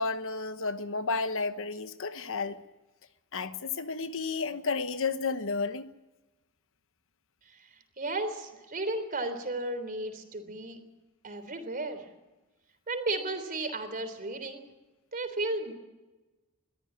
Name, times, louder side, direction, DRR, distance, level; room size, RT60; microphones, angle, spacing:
voice 1, 0.0-2.6 3.3-5.9, left 4 dB, 65° left, 1.1 m, -32 dB
voice 2, 8.0-10.8 11.2-12.0 12.9-14.6 15.1-15.7, right 2 dB, 40° right, 3.5 m, -34 dB
22.5 x 14.0 x 8.7 m
head